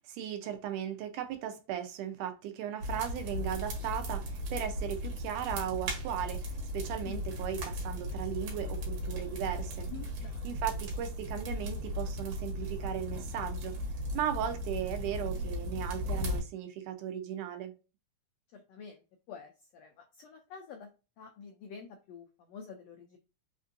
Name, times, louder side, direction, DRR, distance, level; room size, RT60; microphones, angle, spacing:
voice 1, 0.1-6.4 6.7-9.9 10.4-13.7 14.1-17.7, right 10 dB, 85° right, 2.2 m, -37 dB
sound 1, 2.8-16.4, equal, 70° right, 2.4 m, -36 dB
voice 2, 9.9-10.6 18.5-19.0 19.3-20.9 21.2-23.2, left 6 dB, 90° left, 1.4 m, -48 dB
5.3 x 2.5 x 2.6 m
omnidirectional pair, 3.6 m